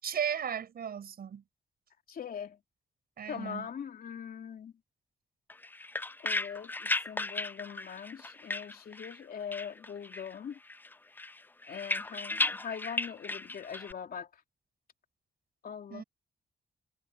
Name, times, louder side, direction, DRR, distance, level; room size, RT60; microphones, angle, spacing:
voice 1, 0.0-1.4 3.2-3.7 15.9-16.0, right 8 dB, 75° right, 7.1 m, -35 dB
voice 2, 2.1-2.6 3.3-4.7 6.2-10.6 11.7-14.4 15.6-16.0, left 7 dB, 70° left, 3.2 m, -42 dB
sound 1, 5.5-9.2 9.5-10.4 10.7-13.9, left 2 dB, 10° left, 0.4 m, -35 dB
cardioid pair, 100°, 16 cm